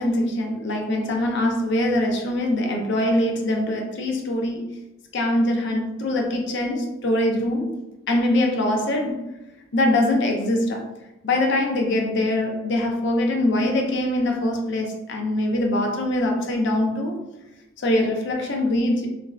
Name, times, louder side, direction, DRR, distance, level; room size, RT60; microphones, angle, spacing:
voice 1, 0.0-4.6 5.1-7.7 8.1-9.2 9.7-10.8 11.2-17.2 17.8-19.1, left 1 dB, 60° left, 2 dB, 0.5 m, -23 dB
2.5 x 2.3 x 3.1 m, 0.97 s
head